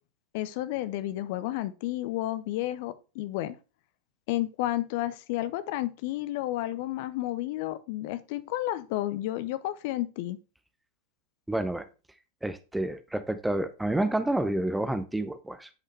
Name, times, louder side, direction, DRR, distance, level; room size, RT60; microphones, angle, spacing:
voice 1, 0.3-3.6 4.3-10.4, left 15 dB, 50° left, 0.6 m, -31 dB
voice 2, 11.5-11.9 12.4-15.7, right 1 dB, 5° right, 0.8 m, -29 dB
9.9 x 5.5 x 3.3 m
figure-of-eight pair, 90°, 0 cm